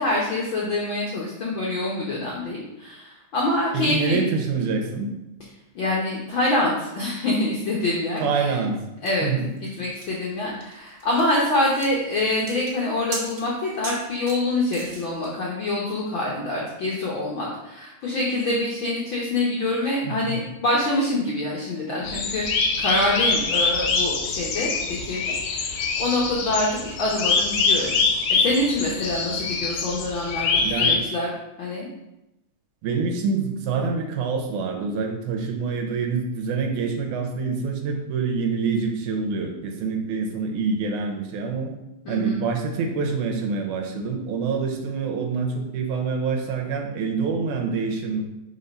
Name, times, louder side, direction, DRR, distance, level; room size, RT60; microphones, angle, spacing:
voice 1, 0.0-4.2 5.7-8.5 9.0-9.3 9.8-27.9 28.3-31.3 31.6-31.9 42.0-42.4, left 2 dB, 70° left, -4 dB, 1.1 m, -25 dB
voice 2, 3.7-5.1 8.2-8.8 9.2-9.5 20.0-20.4 30.6-31.0 32.8-41.7 42.1-48.2, right 5 dB, 80° right, 3 dB, 2.2 m, -26 dB
sound 1, 9.1-15.3, right 3 dB, 50° right, 1.0 m, -39 dB
sound 2, 22.0-31.0, left 4 dB, 90° left, 1.2 m, -24 dB
5.6 x 4.1 x 5.2 m, 0.93 s
omnidirectional pair, 3.5 m